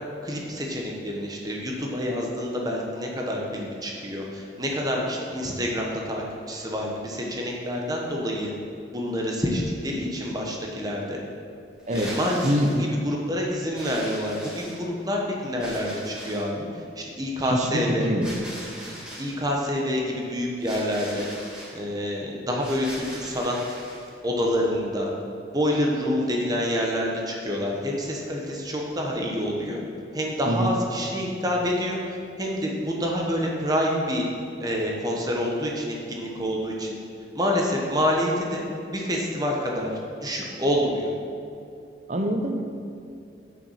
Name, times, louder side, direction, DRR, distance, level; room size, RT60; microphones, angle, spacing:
voice 1, 0.2-8.5 8.9-11.2 11.9-12.5 12.8-18.1 19.2-21.3 21.7-23.6 24.2-25.1 25.5-29.8 30.1-34.3 34.6-37.0 37.3-38.6 38.9-41.1, equal, 20° right, -1 dB, 1.1 m, -27 dB
sound 1, 11.8-12.8 13.7-15.0 15.6-16.5 18.2-19.3 20.6-21.7 22.6-24.1, equal, 5° right, 2.0 m, -40 dB
voice 2, 12.4-12.9 17.4-18.3 30.5-30.7 42.1-42.6, equal, 40° right, 4 dB, 0.7 m, -24 dB
7.0 x 6.0 x 5.6 m, 2.6 s
head